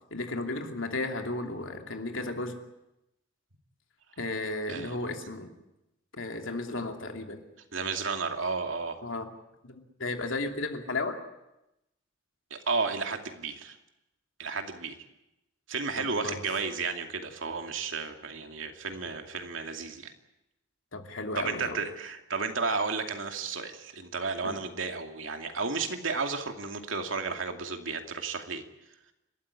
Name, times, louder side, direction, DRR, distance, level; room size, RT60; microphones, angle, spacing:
voice 1, 0.1-2.6 4.2-5.5 6.1-7.4 9.0-9.3 9.6-11.2 16.0-16.4 20.9-21.8 24.4-24.6, left 2 dB, 85° left, 4 dB, 2.9 m, -34 dB
voice 2, 7.7-9.1 12.5-13.8 14.4-15.0 15.7-20.1 21.4-28.6, right 4 dB, 85° right, 4 dB, 2.5 m, -33 dB
29.0 x 13.5 x 9.8 m, 0.92 s
head